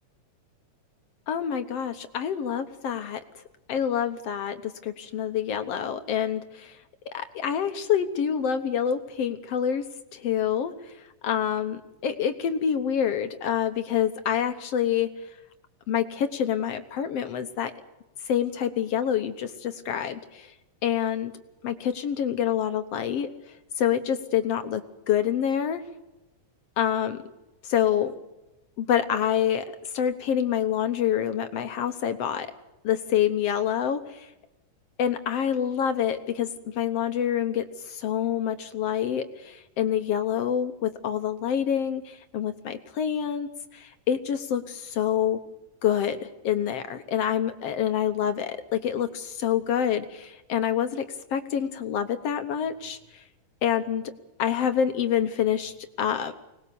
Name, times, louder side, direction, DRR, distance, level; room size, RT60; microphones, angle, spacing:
voice 1, 1.3-3.4 3.7-6.8 7.1-9.8 10.1-10.9 11.2-15.1 15.9-17.7 18.2-20.5 20.8-21.3 21.6-23.3 23.8-24.8 25.1-25.8 26.8-27.2 27.6-28.1 28.8-32.5 32.8-34.3 35.0-45.4 45.8-51.0 51.3-53.2 53.6-54.0 54.4-56.3, left 9 dB, 65° left, 9 dB, 1.7 m, -27 dB
25.0 x 20.0 x 7.0 m, 0.98 s
omnidirectional pair, 3.7 m